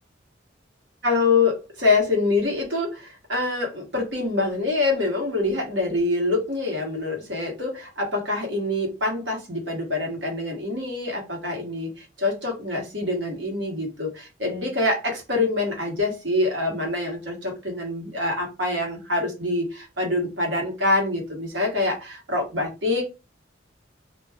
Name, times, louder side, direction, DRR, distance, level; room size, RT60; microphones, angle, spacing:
voice 1, 1.0-23.0, left 2 dB, 75° right, 1 dB, 1.1 m, -25 dB
2.5 x 2.2 x 3.4 m, 0.28 s
head